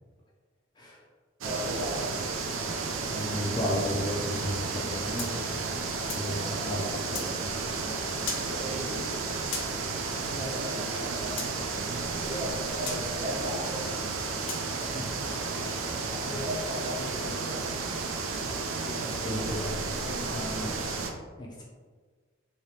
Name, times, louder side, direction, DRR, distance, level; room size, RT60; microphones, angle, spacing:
voice 1, 1.4-2.2 6.2-7.2 8.5-9.1 10.2-11.7 11.9-14.0 16.1-18.0, equal, 35° right, -5 dB, 0.8 m, -37 dB
sound 1, 1.4-21.1, right 4 dB, 80° right, 0.4 m, -32 dB
voice 2, 2.7-5.6 6.1-7.5 14.7-15.1 19.2-20.8 21.4-21.6, equal, 20° left, -4 dB, 0.4 m, -34 dB
sound 2, 5.2-6.3 7.1-7.3 8.3-8.5 9.5-9.7 11.4-11.5 12.9-13.0 14.5-14.7, left 5 dB, 60° left, 0.6 m, -36 dB
3.3 x 2.9 x 2.8 m, 1.5 s
head